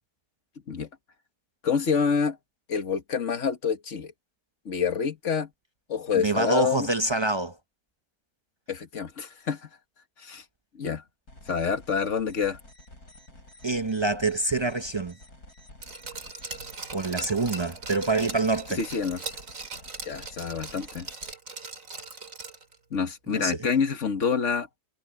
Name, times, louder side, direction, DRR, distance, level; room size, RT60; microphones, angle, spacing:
voice 1, 1.6-2.4 2.7-4.1 4.7-5.5 5.9-6.9 8.7-9.7 10.2-10.4 10.7-11.0 11.5-12.6 18.8-19.2 20.1-21.1 22.9-24.7, left 6 dB, 50° left, 1.8 m, -27 dB
voice 2, 6.1-7.5 13.6-15.1 16.9-18.8 23.3-23.5, right 2 dB, 40° right, 0.4 m, -26 dB
sound 1, 11.3-21.3, left 1 dB, 70° left, 7.9 m, -51 dB
Glass, 15.8-22.8 23.1-23.2, right 3 dB, 55° right, 2.9 m, -40 dB
omnidirectional pair, 1.7 m